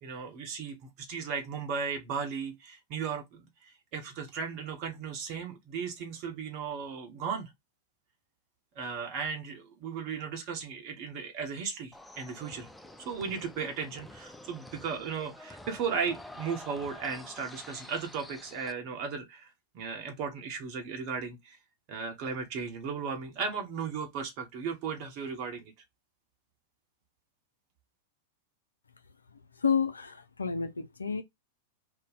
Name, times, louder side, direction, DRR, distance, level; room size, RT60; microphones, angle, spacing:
voice 1, 0.0-7.5 8.8-12.7 13.0-19.5 19.7-21.6 21.9-25.7, right 6 dB, 45° right, 0.8 m, -36 dB
sound 1, 11.9-18.7, left 1 dB, 5° left, 0.4 m, -48 dB
voice 2, 29.6-31.2, left 6 dB, 80° left, 0.4 m, -30 dB
2.6 x 2.1 x 3.9 m
figure-of-eight pair, 95°, 0 cm